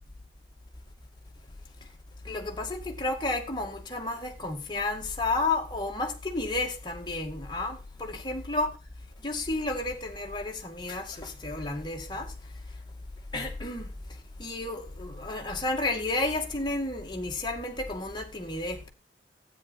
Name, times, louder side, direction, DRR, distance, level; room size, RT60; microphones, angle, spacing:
voice 1, 2.2-8.8 9.2-12.3 13.3-13.9 14.4-18.9, left 2 dB, 25° left, 2.1 m, -31 dB
13.0 x 9.5 x 4.2 m
head